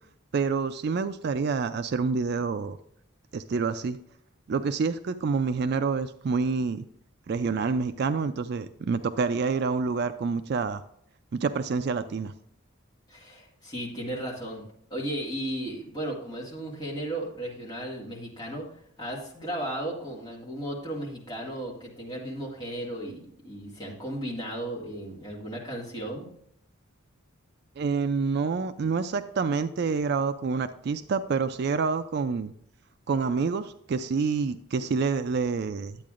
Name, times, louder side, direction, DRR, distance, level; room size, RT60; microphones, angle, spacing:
voice 1, 0.3-2.8 3.3-4.0 4.5-6.9 7.3-10.8 11.3-12.3 27.8-32.5 33.1-36.0, right 5 dB, 50° right, 11 dB, 0.3 m, -27 dB
voice 2, 13.1-14.6 14.9-18.6 19.0-26.3, right 1 dB, 20° left, -3 dB, 1.9 m, -35 dB
10.5 x 8.3 x 2.5 m, 0.70 s
head